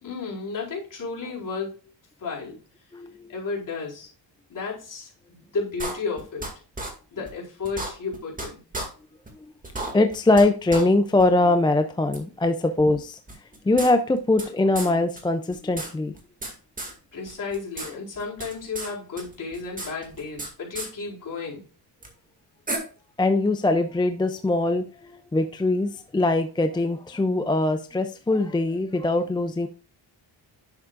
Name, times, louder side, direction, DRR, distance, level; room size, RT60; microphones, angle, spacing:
voice 1, 0.0-1.8 2.2-2.6 3.3-4.1 4.5-6.5 7.1-8.6 17.1-21.6, left 4 dB, 45° left, 4.3 m, -33 dB
voice 2, 2.9-3.3 9.9-13.2 13.7-16.1 23.2-29.7, left 2 dB, 10° left, 0.4 m, -22 dB
sound 1, 5.8-6.5 6.8-6.9 7.3-7.4 7.6-8.5 8.7-8.9 9.3-9.4 9.6-10.4 10.7-10.8 11.2-11.3 12.1-12.2 13.3-14.5 14.7-14.9 15.2-15.3 15.5-16.5 16.8-16.9 17.3-17.9 18.1-18.9 19.2-20.5 20.7-20.9 22.0-22.1 22.7-22.8, right 2 dB, 20° right, 2.2 m, -33 dB
11.0 x 7.1 x 2.5 m
wide cardioid pair, 155°, 45 cm